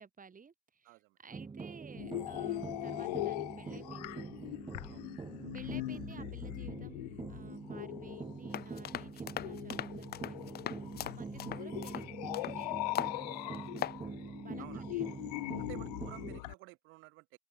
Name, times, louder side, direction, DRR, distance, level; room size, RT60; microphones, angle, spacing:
voice 1, 0.0-4.2 5.5-13.9 14.4-15.7, right 5 dB, 40° right, 6.4 m, -55 dB
voice 2, 0.8-1.2 4.9-5.1 13.1-13.4 14.6-14.8 15.6-17.4, right 23 dB, 75° right, 7.9 m, -53 dB
sound 1, 1.3-16.4, right 4 dB, 25° right, 0.7 m, -45 dB
sound 2, 1.9-16.5, left 20 dB, 85° left, 1.1 m, -41 dB
sound 3, 8.5-12.6 13.0-13.2 13.5-14.0, left 12 dB, 50° left, 0.5 m, -39 dB
open air
hypercardioid pair, 45°, 20 cm